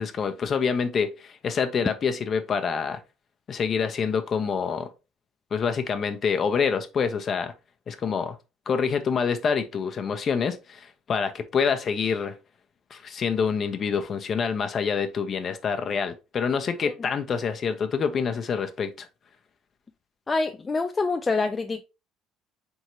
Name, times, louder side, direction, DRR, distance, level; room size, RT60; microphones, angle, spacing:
voice 1, 0.0-3.0 3.5-4.9 5.5-7.5 7.9-8.4 8.7-12.3 12.9-19.1, left 6 dB, 40° left, 0.8 m, -26 dB
voice 2, 20.3-21.8, left 3 dB, 20° left, 0.3 m, -26 dB
4.2 x 3.6 x 3.0 m
cardioid pair, 115°, 0 cm